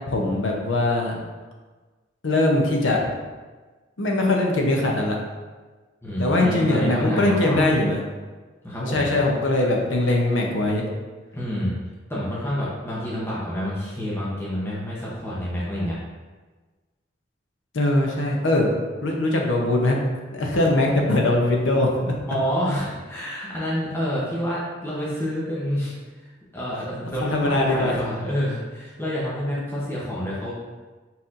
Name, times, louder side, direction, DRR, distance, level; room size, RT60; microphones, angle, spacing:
voice 1, 0.1-1.2 2.2-3.0 4.0-5.2 6.2-8.0 8.8-10.9 17.7-18.7 19.0-20.0 20.3-22.1 27.2-28.0 29.6-29.7, left 2 dB, 90° left, 0 dB, 0.7 m, -21 dB
voice 2, 6.0-7.6 8.6-9.1 11.3-11.7 12.1-16.0 22.3-25.9 26.2-30.5, equal, 15° left, -7 dB, 0.8 m, -28 dB
4.2 x 4.1 x 2.5 m, 1.3 s
head